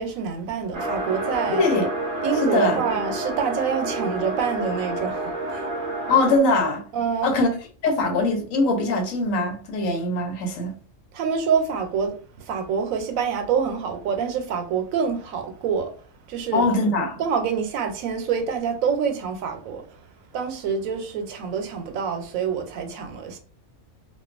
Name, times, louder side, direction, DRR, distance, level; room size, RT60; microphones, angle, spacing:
voice 1, 0.0-1.6 2.2-5.7 6.9-7.3 11.1-15.9 16.3-16.7 17.2-20.0 20.3-23.4, right 6 dB, 90° right, 1.0 m, -26 dB
sound 1, 0.7-6.4, right 2 dB, 55° right, 0.6 m, -29 dB
voice 2, 1.5-1.9 2.4-2.8 6.1-6.8 7.2-7.5 7.8-10.8 16.5-17.2, left 2 dB, 80° left, 1.1 m, -22 dB
2.5 x 2.3 x 2.4 m
omnidirectional pair, 1.4 m